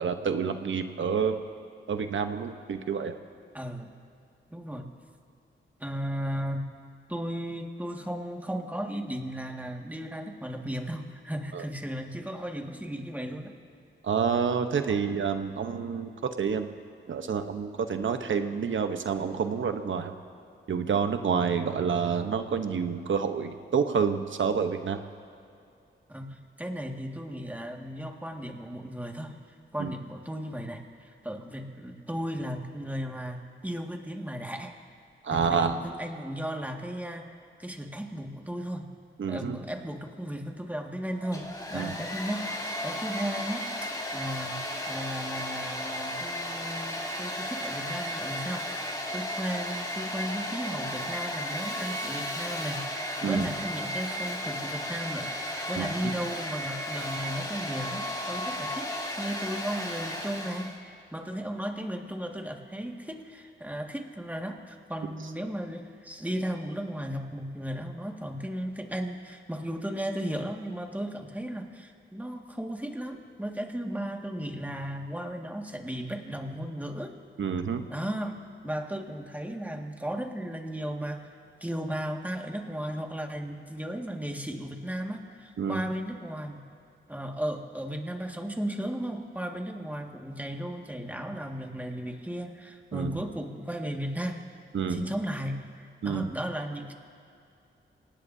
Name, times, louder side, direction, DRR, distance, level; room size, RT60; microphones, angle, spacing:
voice 1, 0.0-1.4 1.9-3.2 11.5-11.6 14.0-16.1 16.4-16.7 17.1-20.1 20.7-25.0 29.8-29.9 35.2-35.8 39.2-39.6 41.7-41.9 53.2-53.5 55.8-55.9 77.4-77.8 85.6-85.8 92.9-93.3 94.7-95.0 96.0-96.3, right 6 dB, 75° right, 7 dB, 1.0 m, -28 dB
voice 2, 3.5-3.9 4.5-4.9 5.8-6.7 7.1-13.5 26.1-29.4 29.7-34.8 35.3-37.3 37.6-38.9 39.3-48.8 49.1-55.3 55.7-77.1 77.9-78.4 78.6-81.3 81.6-86.6 87.1-94.4 94.9-95.7 96.0-96.9, equal, 10° right, 2 dB, 1.9 m, -35 dB
Domestic sounds home sounds, 41.2-60.8, left 1 dB, 20° left, 3.1 m, -34 dB
26.5 x 18.5 x 2.8 m, 2.5 s
cardioid pair, 60°, 20 cm